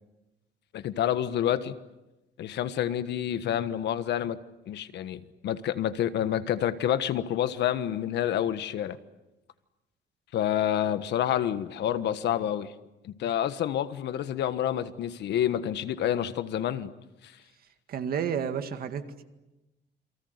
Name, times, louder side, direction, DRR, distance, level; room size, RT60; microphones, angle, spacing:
voice 1, 0.7-1.7 2.4-4.4 4.7-9.0 10.3-12.7 13.0-16.9 17.2-17.3, left 10 dB, 70° left, 12 dB, 1.4 m, -28 dB
voice 2, 17.9-19.2, right 7 dB, 55° right, 8 dB, 2.1 m, -31 dB
29.0 x 24.0 x 8.1 m, 1.0 s
cardioid pair, 165°, 18 cm